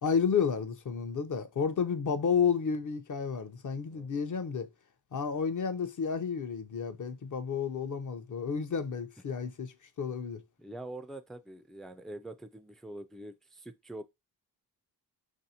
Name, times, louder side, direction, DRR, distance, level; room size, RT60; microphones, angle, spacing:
voice 1, 0.0-4.7 5.1-10.4, left 6 dB, 45° left, 0.6 m, -31 dB
voice 2, 10.6-14.0, right 1 dB, ahead, 0.3 m, -44 dB
4.1 x 2.6 x 2.8 m
cardioid pair, 50°, 44 cm